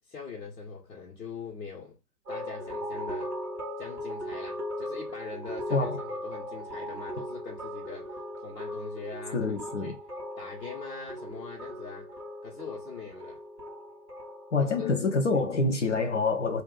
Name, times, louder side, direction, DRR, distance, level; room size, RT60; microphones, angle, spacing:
voice 1, 0.1-2.0 2.3-3.4 3.8-10.0 10.4-12.1 12.4-13.4 14.5-15.0, left 5 dB, 70° left, 1.1 m, -42 dB
sound 1, 2.3-15.0, equal, 5° right, 0.5 m, -38 dB
voice 2, 5.7-6.0 9.3-9.9 14.5-16.6, left 3 dB, 45° left, 0.6 m, -26 dB
2.5 x 2.3 x 3.8 m
figure-of-eight pair, 125°, 50 cm